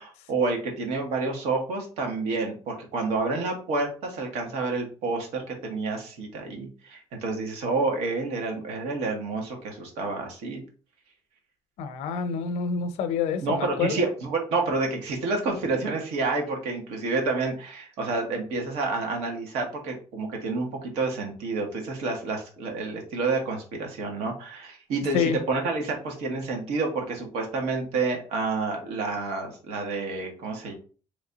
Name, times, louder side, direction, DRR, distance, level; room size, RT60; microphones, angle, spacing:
voice 1, 0.0-10.6 13.4-30.7, right 3 dB, 80° right, 1.5 m, -29 dB
voice 2, 11.8-14.0 25.1-25.4, left 6 dB, 80° left, 0.6 m, -27 dB
3.4 x 3.1 x 3.9 m
cardioid pair, 165°, 11 cm